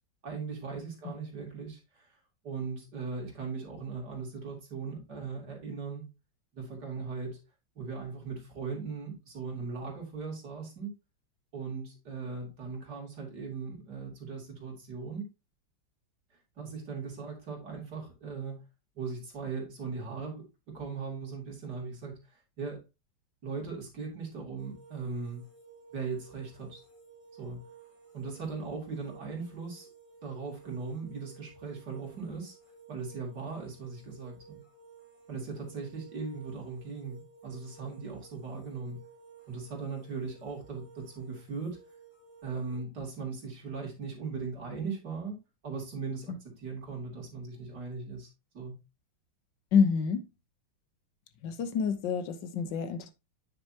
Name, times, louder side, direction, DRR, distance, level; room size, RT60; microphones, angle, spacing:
voice 1, 0.2-2.2 2.4-6.0 6.5-7.4 7.8-10.9 11.5-15.3 16.6-18.7 19.0-20.4 20.7-22.2 22.6-22.8 23.4-25.4 25.9-26.8 27.4-27.6 28.1-29.9 30.2-32.6 32.9-34.6 35.3-39.0 39.5-41.8 42.4-48.3 48.5-48.7, right 4 dB, 50° right, 3.5 m, -39 dB
sound 1, 24.6-42.8, right 6 dB, 40° left, 3.9 m, -56 dB
voice 2, 49.7-50.3 51.4-53.1, left 6 dB, 65° left, 1.6 m, -27 dB
9.2 x 6.6 x 2.8 m
omnidirectional pair, 2.3 m